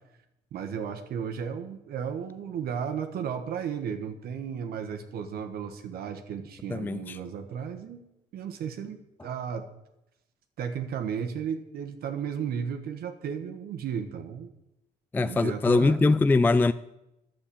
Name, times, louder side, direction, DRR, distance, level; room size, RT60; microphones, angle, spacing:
voice 1, 0.5-8.0 8.3-9.7 10.6-14.5 15.2-16.0, right 7 dB, 65° right, 1.2 m, -34 dB
voice 2, 6.7-7.2 15.1-16.7, left 3 dB, 10° left, 0.3 m, -22 dB
10.0 x 7.7 x 8.5 m
cardioid pair, 110°, 17 cm